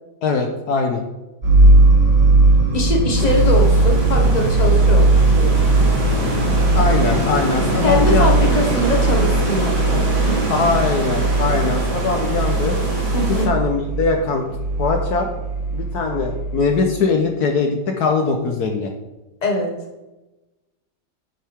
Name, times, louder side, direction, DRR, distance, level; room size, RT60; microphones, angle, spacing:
voice 1, 0.2-1.0 6.7-8.3 10.6-12.8 13.5-14.4 14.8-15.3 15.7-18.9, left 4 dB, 65° left, 3 dB, 1.4 m, -21 dB
sound 1, 1.4-16.7, right 2 dB, 35° right, 2.4 m, -18 dB
voice 2, 2.7-5.7 7.8-10.4 13.1-13.5 19.4-19.7, left 1 dB, 25° left, 1 dB, 1.6 m, -22 dB
sound 2, 3.1-13.5, right 1 dB, 70° right, 2.8 m, -25 dB
10.5 x 7.9 x 3.5 m, 1.1 s
omnidirectional pair, 1.9 m